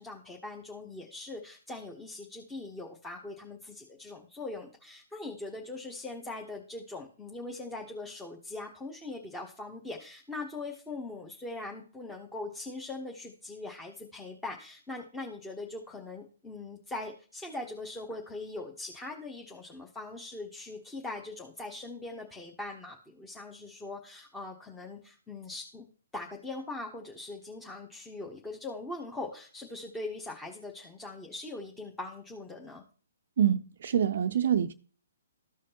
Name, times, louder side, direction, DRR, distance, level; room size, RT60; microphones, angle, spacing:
voice 1, 0.0-25.9 26.1-32.8, left 2 dB, 10° left, 1.1 m, -41 dB
voice 2, 33.4-34.7, right 9 dB, 55° right, 0.4 m, -26 dB
14.0 x 5.0 x 2.9 m
figure-of-eight pair, 130°, 0 cm